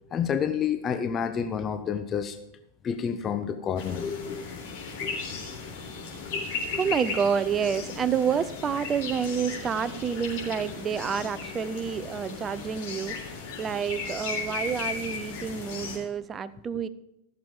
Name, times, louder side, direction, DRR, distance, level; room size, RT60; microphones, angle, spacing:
voice 1, 0.1-2.4 2.8-4.5 5.0-5.2 6.3-6.5, left 7 dB, 25° left, 9 dB, 0.6 m, -29 dB
sound 1, 3.8-16.0, left 4 dB, 50° left, 3.8 m, -36 dB
voice 2, 6.7-13.2 13.6-16.9, right 7 dB, 25° right, 16 dB, 0.5 m, -28 dB
15.0 x 7.0 x 5.3 m, 0.89 s
figure-of-eight pair, 90°, 0 cm